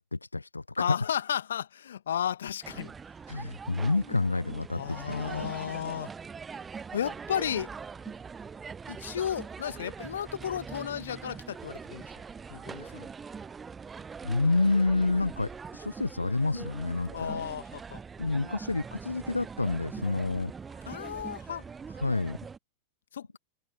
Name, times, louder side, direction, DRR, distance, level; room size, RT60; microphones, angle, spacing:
voice 1, 0.0-1.0 3.3-5.5 12.7-13.0 14.2-17.5 18.2-20.9 21.9-22.4, left 3 dB, 80° left, 0.7 m, -29 dB
voice 2, 0.8-2.9 4.7-6.1 6.9-7.7 8.9-12.1 12.5-13.1 17.1-18.0 20.9-21.6 23.1-23.4, left 9 dB, 65° left, 1.9 m, -34 dB
sound 1, 2.6-22.6, right 5 dB, 15° right, 0.8 m, -43 dB
figure-of-eight pair, 90°, 0 cm